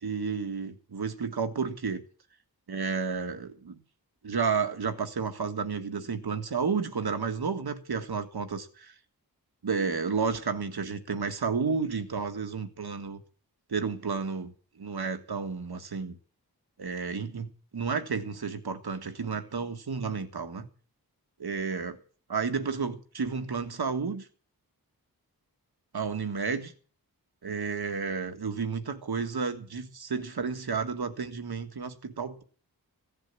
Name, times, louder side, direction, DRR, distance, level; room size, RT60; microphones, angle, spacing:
voice 1, 0.0-2.0 2.7-3.8 4.2-8.9 9.6-13.2 13.7-16.2 16.8-20.7 21.4-22.0 22.3-24.3 25.9-26.7 27.4-32.4, right 5 dB, 80° right, 1.8 m, -31 dB
16.0 x 7.8 x 8.4 m
wide cardioid pair, 80°, 38 cm